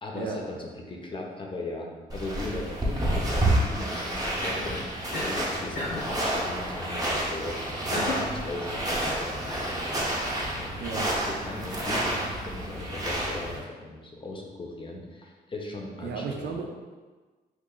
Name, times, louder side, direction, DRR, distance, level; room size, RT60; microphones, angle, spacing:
voice 1, 0.0-9.7 10.6-11.0 11.3-16.6, left 2 dB, 30° left, 0 dB, 0.6 m, -38 dB
sound 1, 2.1-13.6, right 1 dB, 20° right, 0.7 m, -29 dB
Cough, 4.4-4.7 5.1-5.4 5.8-6.1 7.9-8.3 8.9-9.7, left 1 dB, 85° left, 0.9 m, -33 dB
voice 2, 10.8-11.1 16.0-16.9, right 4 dB, 90° right, 2 dB, 0.5 m, -34 dB
3.0 x 2.5 x 3.7 m, 1.3 s
cardioid pair, 105°, 17 cm